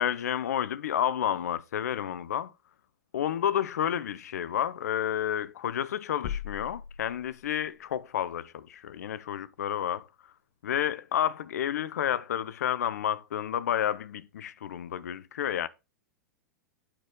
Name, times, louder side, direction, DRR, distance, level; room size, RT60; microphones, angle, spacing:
voice 1, 0.0-2.5 3.1-10.1 10.6-15.7, left 10 dB, 65° left, 0.7 m, -30 dB
sound 1, 6.2-7.8, left 9 dB, 50° left, 1.1 m, -38 dB
8.8 x 6.3 x 3.6 m
figure-of-eight pair, 100°, 9 cm